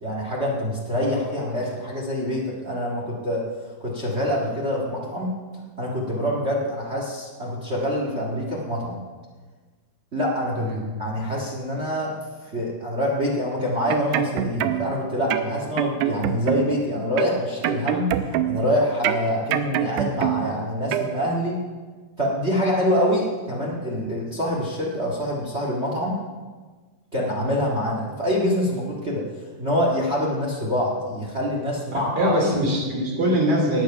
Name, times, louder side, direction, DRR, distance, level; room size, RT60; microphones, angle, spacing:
voice 1, 0.0-3.4 3.8-5.3 5.8-9.0 10.1-10.7 11.0-12.1 12.5-21.6 22.2-26.1 27.1-29.2 29.6-32.3, equal, 65° right, -2 dB, 0.6 m, -25 dB
sound 1, 13.7-15.0 15.3-16.8 17.2-18.7 19.0-20.6 20.9-21.1, right 11 dB, 85° right, 2.9 m, -25 dB
voice 2, 31.9-33.8, equal, 35° right, -1 dB, 3.6 m, -22 dB
19.0 x 7.7 x 5.8 m, 1.4 s
omnidirectional pair, 4.7 m